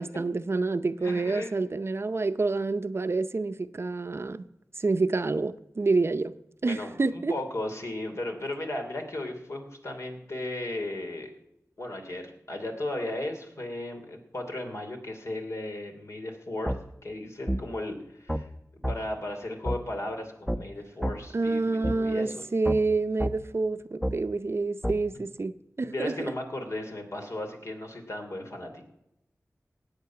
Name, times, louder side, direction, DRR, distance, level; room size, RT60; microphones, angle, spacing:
voice 1, 0.0-4.4 4.8-6.3 6.6-7.3 21.3-26.3, right 3 dB, 50° right, 0.6 m, -28 dB
voice 2, 1.0-1.5 6.6-11.3 11.8-16.7 17.0-18.5 18.9-22.4 25.8-28.8, left 1 dB, 60° left, 2.9 m, -35 dB
sound 1, 16.7-16.8 17.5-17.6 18.3-18.4 18.8-19.0 19.7-19.8 20.5-20.6 21.0-21.2 21.8-22.0 22.7-22.8 23.2-23.3 24.0-24.2 24.8-25.0, equal, 5° left, 0.8 m, -28 dB
18.5 x 8.2 x 5.8 m
wide cardioid pair, 75°, 6 cm